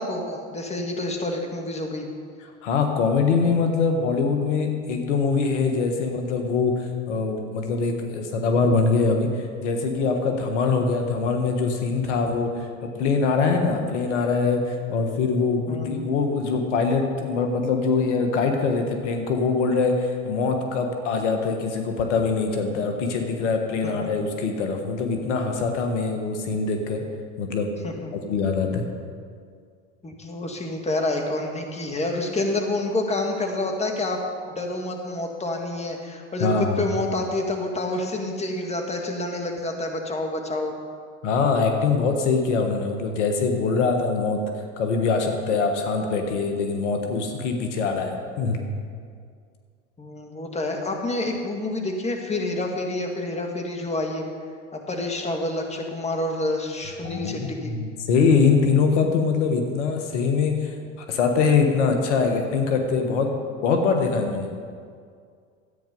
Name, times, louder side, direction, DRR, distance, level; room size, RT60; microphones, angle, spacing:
voice 1, 0.0-2.1 15.7-16.1 23.8-23.9 27.8-28.1 30.0-34.2 34.6-40.7 50.0-54.2 54.7-57.7, left 2 dB, 20° left, 2 dB, 2.0 m, -28 dB
voice 2, 2.6-12.5 12.8-27.0 27.4-27.7 28.1-28.8 36.4-36.9 41.2-44.4 44.8-48.6 57.0-60.7 61.1-63.3 63.6-64.5, left 4 dB, 80° left, 4 dB, 1.5 m, -23 dB
13.0 x 8.9 x 5.4 m, 2.1 s
hypercardioid pair, 85°, 35 cm